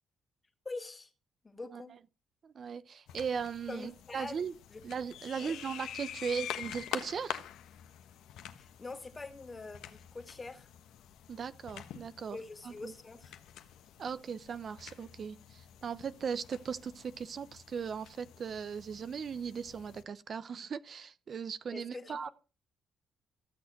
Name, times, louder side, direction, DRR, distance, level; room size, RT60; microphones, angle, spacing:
voice 1, 0.6-1.1 1.4-1.9 3.7-4.8 5.4-5.6 8.6-10.7 12.3-13.3 21.7-22.3, left 3 dB, 25° left, 2.2 m, -44 dB
voice 2, 2.4-4.5 4.8-7.4 11.3-12.4 12.6-12.9 14.0-22.3, right 6 dB, 50° right, 0.8 m, -38 dB
sound 1, 3.1-20.0, left 10 dB, 85° left, 1.3 m, -47 dB
15.0 x 6.5 x 5.9 m
cardioid pair, 90°, 0 cm